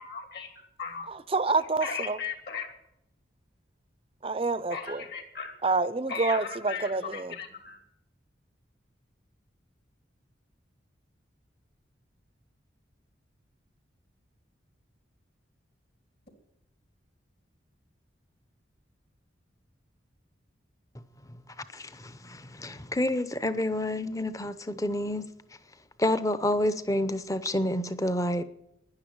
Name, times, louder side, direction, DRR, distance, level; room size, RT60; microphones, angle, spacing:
voice 1, 0.0-1.1 1.8-2.7 4.7-5.5 6.1-7.8, left 5 dB, 55° left, 2.7 m, -37 dB
voice 2, 1.1-2.2 4.2-5.0 5.6-7.4, right 3 dB, 30° right, 0.6 m, -28 dB
voice 3, 21.7-25.3 26.0-28.4, left 1 dB, 15° left, 0.7 m, -29 dB
11.5 x 10.5 x 8.7 m
head